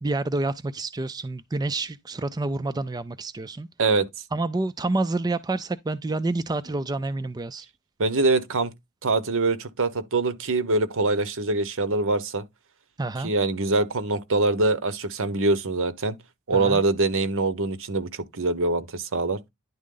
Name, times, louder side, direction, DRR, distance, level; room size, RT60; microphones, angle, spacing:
voice 1, 0.0-3.7 4.3-7.7 13.0-13.3 16.5-16.8, right 2 dB, 20° right, 0.4 m, -28 dB
voice 2, 8.0-8.7 9.0-12.4 13.2-16.2 16.5-19.4, right 3 dB, 60° right, 1.0 m, -24 dB
10.5 x 3.6 x 3.8 m
head